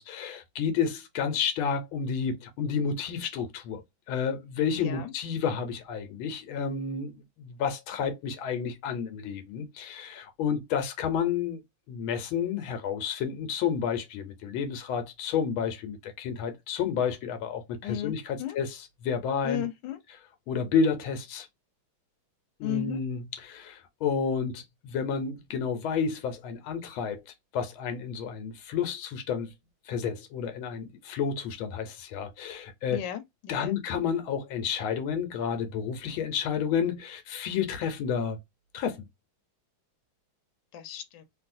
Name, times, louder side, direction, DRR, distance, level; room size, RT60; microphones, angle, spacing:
voice 1, 0.0-3.8 4.1-11.6 11.9-18.8 19.0-19.6 20.5-21.5 22.6-27.2 27.5-29.5 29.9-33.0 33.5-38.4 38.7-39.0, left 6 dB, 90° left, 1.5 m, -30 dB
voice 2, 4.7-5.1 17.8-18.6 19.4-20.0 22.6-23.0 32.9-33.7 40.7-41.2, left 13 dB, 70° left, 1.3 m, -35 dB
3.1 x 2.7 x 2.5 m
omnidirectional pair, 2.2 m